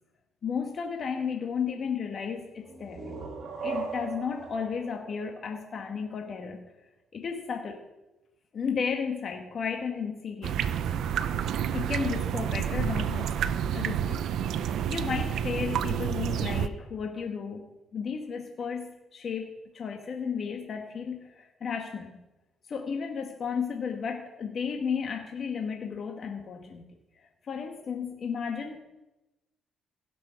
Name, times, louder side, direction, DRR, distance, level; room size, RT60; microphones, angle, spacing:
voice 1, 0.4-3.1 3.6-6.6 7.1-7.8 8.5-10.6 11.7-13.4 13.7-14.2 14.5-22.1 22.7-26.8 27.2-28.8, left 6 dB, 55° left, 3 dB, 1.2 m, -33 dB
sound 1, 2.6-6.2, right 5 dB, 60° right, 2.4 m, -39 dB
sound 2, 10.4-16.7, right 9 dB, 75° right, 0.5 m, -29 dB
16.5 x 6.1 x 5.7 m, 1.0 s
cardioid pair, 90°, 0 cm